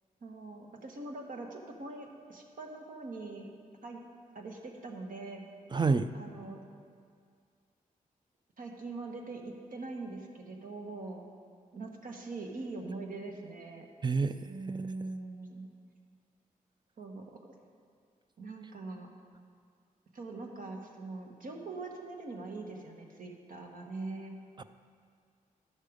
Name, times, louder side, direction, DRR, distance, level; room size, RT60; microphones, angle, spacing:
voice 1, 0.2-3.5 3.8-4.0 4.3-5.4 6.1-6.6 8.6-11.3 11.7-13.9 14.4-15.7 17.0-17.5 18.4-19.1 20.1-24.4, right 3 dB, 70° right, 1 dB, 1.3 m, -42 dB
voice 2, 5.7-6.1 14.0-14.4 14.7-14.8 24.6-24.7, right 4 dB, 30° right, 11 dB, 0.4 m, -27 dB
11.0 x 6.5 x 5.1 m, 2.2 s
cardioid pair, 75°, 15 cm